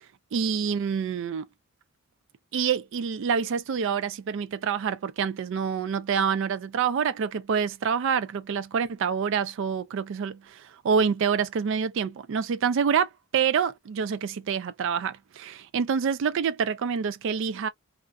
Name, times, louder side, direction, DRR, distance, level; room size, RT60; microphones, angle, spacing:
voice 1, 0.3-1.5 2.5-17.7, right 6 dB, 60° right, 0.3 m, -27 dB
2.4 x 2.3 x 2.3 m
head